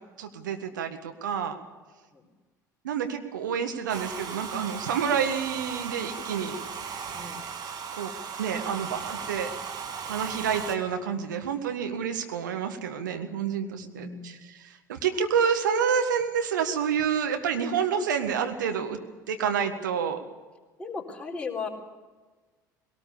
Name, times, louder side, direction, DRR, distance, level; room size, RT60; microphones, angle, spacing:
voice 1, 0.2-1.6 2.8-7.0 7.9-8.1 8.4-9.5 10.0-14.3 14.6-19.0 19.3-20.2, right 7 dB, 70° right, 6 dB, 1.7 m, -28 dB
Domestic sounds home sounds, 3.9-10.8, right 6 dB, 40° right, 1.9 m, -37 dB
voice 2, 13.7-14.4 20.8-21.7, left 4 dB, 10° left, -2 dB, 4.1 m, -37 dB
20.5 x 18.5 x 7.0 m, 1.3 s
figure-of-eight pair, 65°, 10 cm